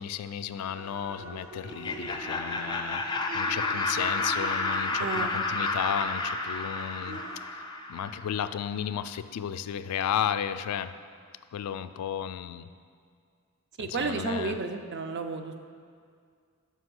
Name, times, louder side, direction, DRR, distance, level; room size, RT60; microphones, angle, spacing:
voice 1, 0.0-3.0 3.3-7.2 7.9-11.0 11.5-12.7 13.8-14.6, left 9 dB, 90° left, 13 dB, 0.3 m, -33 dB
sound 1, 0.6-7.4, right 2 dB, 75° right, 0.8 m, -45 dB
Laughter, 1.6-8.4, left 3 dB, 20° left, 0.4 m, -31 dB
voice 2, 5.0-5.3 13.8-15.5, right 4 dB, 50° right, 7 dB, 0.4 m, -32 dB
5.6 x 5.2 x 6.1 m, 2.2 s
head